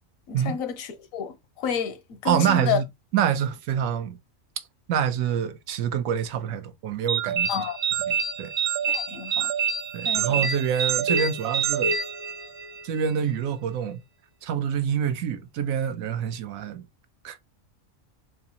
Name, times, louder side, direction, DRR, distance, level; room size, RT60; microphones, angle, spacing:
voice 1, 0.3-2.8 7.5-7.8 8.9-9.5 10.0-10.5, left 8 dB, 85° left, 1.1 m, -30 dB
voice 2, 2.2-2.8 3.1-4.2 4.9-7.6 8.1-8.5 9.9-12.0 12.8-14.0 14.4-16.9 17.2-17.5, right 8 dB, 85° right, 1.0 m, -26 dB
sound 1, 7.1-12.8, right 6 dB, 65° right, 0.7 m, -26 dB
4.0 x 2.4 x 2.8 m
omnidirectional pair, 1.4 m